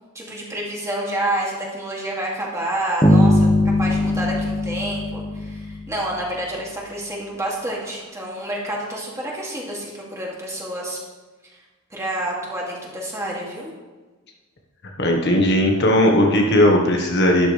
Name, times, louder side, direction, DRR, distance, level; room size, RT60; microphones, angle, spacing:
voice 1, 0.1-3.5 3.8-11.0 11.5-11.6 11.9-13.7, right 1 dB, 15° right, -4 dB, 2.6 m, -28 dB
sound 1, 3.0-6.0, left 1 dB, 25° left, 1.6 m, -19 dB
voice 2, 15.0-17.5, left 1 dB, 55° left, 1 dB, 1.4 m, -17 dB
12.0 x 11.0 x 3.4 m, 1.3 s
head